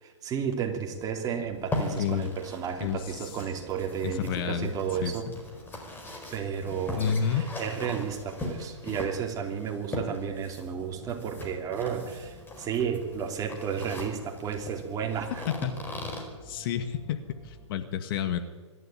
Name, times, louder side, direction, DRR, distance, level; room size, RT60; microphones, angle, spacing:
voice 1, 0.0-5.3 6.3-15.4, right 7 dB, 25° right, 3 dB, 3.2 m, -32 dB
sound 1, 0.9-17.7, right 1 dB, ahead, 4.7 m, -51 dB
sound 2, 1.5-16.2, left 2 dB, 15° left, 4.6 m, -39 dB
voice 2, 4.0-4.7 5.0-5.1 7.0-7.4 15.5-15.8 16.5-18.4, left 8 dB, 50° left, 9 dB, 1.9 m, -29 dB
25.5 x 12.5 x 9.0 m, 1.4 s
hypercardioid pair, 125°, 16 cm